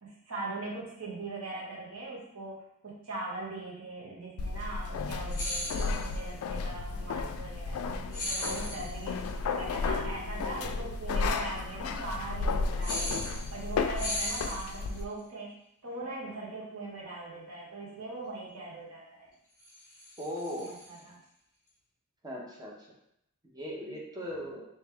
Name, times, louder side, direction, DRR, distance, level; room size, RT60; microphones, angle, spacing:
voice 1, 0.0-19.3 20.6-21.2 24.2-24.4, right 2 dB, 75° right, -4 dB, 1.2 m, -41 dB
sound 1, 4.4-15.0, left 4 dB, 70° left, 0.3 m, -33 dB
sound 2, 5.3-6.2 8.1-9.0 12.8-13.7 13.9-15.0 19.6-21.0, left 1 dB, 20° left, 1.2 m, -37 dB
voice 2, 20.2-20.7 22.2-22.7 23.5-24.6, equal, 20° right, -3 dB, 0.8 m, -38 dB
3.2 x 3.1 x 3.4 m, 0.76 s
head